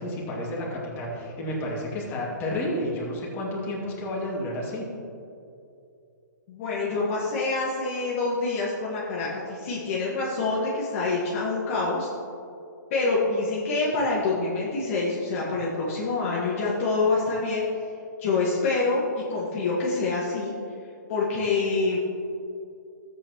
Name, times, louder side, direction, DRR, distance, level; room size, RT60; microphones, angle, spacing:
voice 1, 0.0-4.8, left 1 dB, 25° left, -4 dB, 2.4 m, -31 dB
voice 2, 6.5-12.1 12.9-17.6 18.2-20.5 21.1-22.0, left 3 dB, 45° left, -5 dB, 1.8 m, -26 dB
14.0 x 8.1 x 3.1 m, 2.6 s
hypercardioid pair, 145°, 10 cm